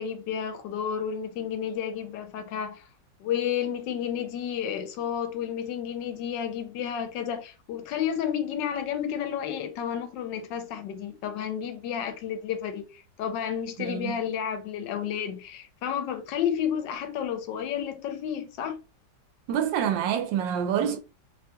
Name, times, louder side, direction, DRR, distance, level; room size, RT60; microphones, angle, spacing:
voice 1, 0.0-2.9 3.2-18.8, left 8 dB, 85° left, 1.3 m, -31 dB
voice 2, 13.8-14.2 19.5-21.0, right 9 dB, 90° right, 1.3 m, -27 dB
3.2 x 2.2 x 2.8 m
omnidirectional pair, 1.9 m